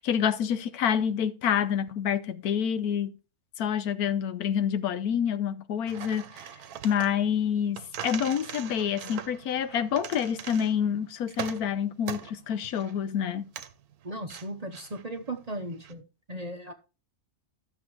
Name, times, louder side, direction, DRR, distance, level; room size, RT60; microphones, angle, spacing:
voice 1, 0.0-3.1 3.6-6.3 6.8-7.8 8.0-13.4, left 8 dB, 85° left, 1.2 m, -27 dB
sound 1, 5.9-15.9, right 9 dB, 85° right, 1.3 m, -42 dB
voice 2, 14.0-16.7, right 1 dB, 35° right, 0.8 m, -37 dB
13.0 x 7.0 x 3.1 m
omnidirectional pair, 1.5 m